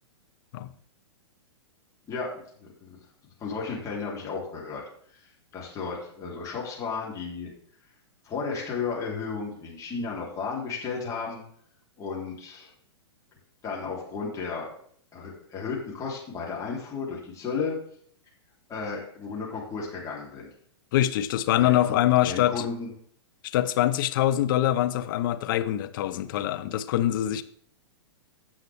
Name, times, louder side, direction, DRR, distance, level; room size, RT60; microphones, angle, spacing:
voice 1, 2.1-3.0 3.4-4.8 5.1-5.3 5.5-7.5 8.2-11.4 12.0-12.7 13.6-14.7 15.1-17.7 18.7-20.5 21.6-21.9 22.2-22.9, left 5 dB, 20° left, -4 dB, 3.3 m, -33 dB
voice 2, 20.9-22.5 23.4-27.4, left 13 dB, 45° left, 11 dB, 0.7 m, -24 dB
16.0 x 5.8 x 3.5 m, 0.62 s
figure-of-eight pair, 105°, 15 cm